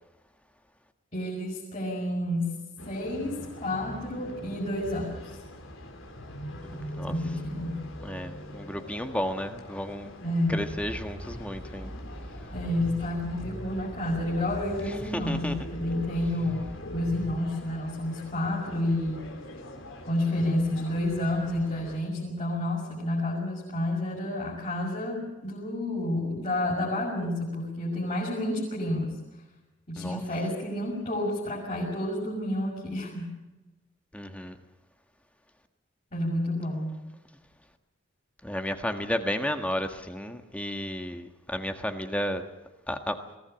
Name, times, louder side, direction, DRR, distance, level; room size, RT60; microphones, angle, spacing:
voice 1, 1.1-2.6 2.9-5.3 7.1-7.8 10.2-10.7 12.5-19.3 20.1-29.2 29.9-33.3 36.1-36.9, left 1 dB, 35° left, -5 dB, 6.2 m, -30 dB
sound 1, 2.8-22.0, equal, 75° left, 4.0 m, -43 dB
voice 2, 8.0-10.1 10.5-11.9 15.1-15.6 30.0-30.2 34.1-34.6 38.4-42.4 42.9-43.2, equal, 5° left, 6 dB, 1.5 m, -32 dB
sound 2, 10.7-17.4, equal, 20° right, 3.2 m, -42 dB
22.0 x 17.0 x 9.1 m, 1.1 s
head